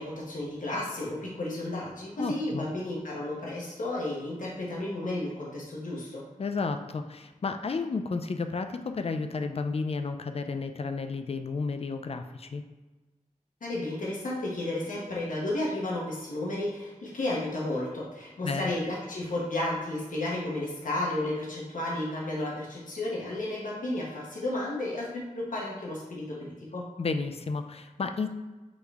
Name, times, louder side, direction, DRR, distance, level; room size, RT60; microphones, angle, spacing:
voice 1, 0.0-6.2 13.6-26.9, left 1 dB, 80° left, -5 dB, 1.0 m, -33 dB
voice 2, 2.2-2.7 6.4-12.6 18.4-18.7 27.0-28.3, left 4 dB, 50° left, 8 dB, 0.4 m, -32 dB
6.1 x 2.2 x 3.5 m, 1.2 s
cardioid pair, 45°, 13 cm